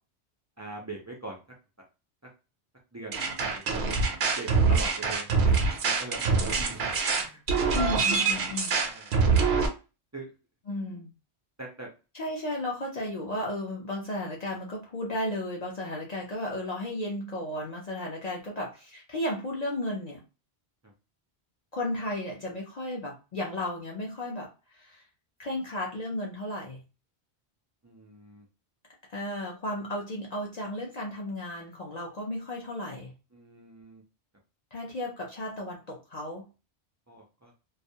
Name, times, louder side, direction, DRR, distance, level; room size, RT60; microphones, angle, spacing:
voice 1, 0.6-1.4 2.9-3.6 4.2-7.9 8.9-9.4 10.1-10.3 11.6-11.9 20.8-20.9 27.8-28.4 33.3-34.0 37.1-37.5, right 2 dB, 30° right, -1 dB, 0.3 m, -43 dB
sound 1, 3.1-9.7, right 4 dB, 75° right, 0.8 m, -25 dB
voice 2, 7.7-8.7 10.7-11.1 12.1-20.2 21.7-24.5 24.7-25.0 25.4-26.8 29.1-33.1 34.7-36.5, left 1 dB, 50° left, -2 dB, 0.5 m, -34 dB
2.3 x 2.1 x 2.7 m, 0.31 s
omnidirectional pair, 1.1 m